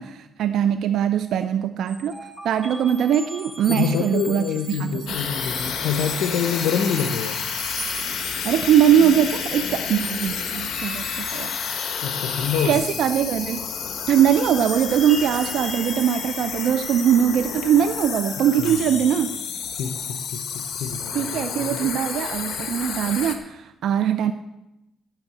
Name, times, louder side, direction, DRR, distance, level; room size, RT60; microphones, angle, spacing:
voice 1, 0.0-5.2 8.4-11.6 12.1-12.2 12.6-13.6 14.1-19.4 21.1-24.3, right 9 dB, 75° right, 10 dB, 0.5 m, -21 dB
sound 1, 1.9-17.4, equal, ahead, 1.4 m, -38 dB
voice 2, 3.7-7.4 12.0-12.9 18.4-18.8 19.8-21.9, left 7 dB, 85° left, 5 dB, 0.9 m, -27 dB
sound 2, 5.1-23.4, left 7 dB, 70° left, 1.3 m, -30 dB
10.5 x 6.4 x 8.3 m, 0.92 s
cardioid pair, 90°, 0 cm